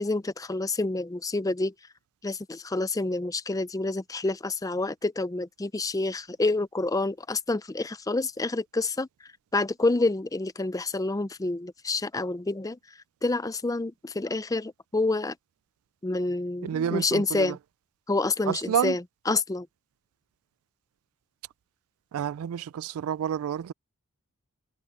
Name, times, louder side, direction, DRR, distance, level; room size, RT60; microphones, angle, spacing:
voice 1, 0.0-1.7 2.2-9.1 9.5-12.8 13.2-15.3 16.0-17.6 18.1-19.7, left 2 dB, 15° left, 0.5 m, -28 dB
voice 2, 16.6-17.5 18.5-19.0 22.1-23.7, right 9 dB, 75° right, 0.3 m, -29 dB
head